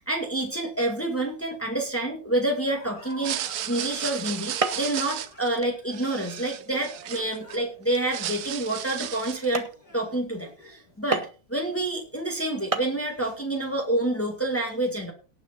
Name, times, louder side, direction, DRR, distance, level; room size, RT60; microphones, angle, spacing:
voice 1, 0.0-9.7 9.9-15.1, right 1 dB, 10° left, 1 dB, 2.2 m, -28 dB
Laughter, 2.6-10.9, left 2 dB, 60° left, 7.4 m, -49 dB
sound 1, 3.1-7.6 7.9-9.5, right 11 dB, 70° right, 1.3 m, -34 dB
sound 2, 3.5-3.7 4.6-5.0 5.4-5.8 6.4-6.5 7.1-7.3 7.9-8.0 8.6-8.7 9.1-9.2 9.5-9.8 11.1-11.5 12.4-12.5 12.7-13.0, right 3 dB, 25° right, 1.0 m, -30 dB
18.0 x 6.5 x 4.4 m, 0.35 s
omnidirectional pair, 1.8 m